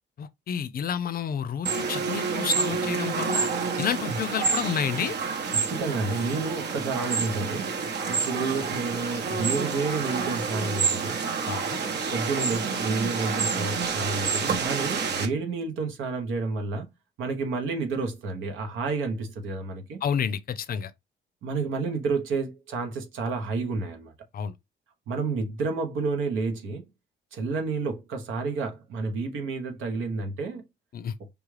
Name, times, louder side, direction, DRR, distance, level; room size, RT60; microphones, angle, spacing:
voice 1, 0.2-3.5 3.8-5.2 11.5-11.8 20.0-20.9 24.3-24.5 30.9-31.1, left 8 dB, 50° left, 0.5 m, -30 dB
sound 1, 1.7-15.3, right 5 dB, 60° right, 1.0 m, -28 dB
voice 2, 5.5-11.2 12.1-16.9 17.2-20.0 21.4-24.1 25.1-26.9 27.3-30.6 31.2-31.3, right 4 dB, 85° right, 1.1 m, -30 dB
5.0 x 2.4 x 3.2 m
cardioid pair, 90°, 20 cm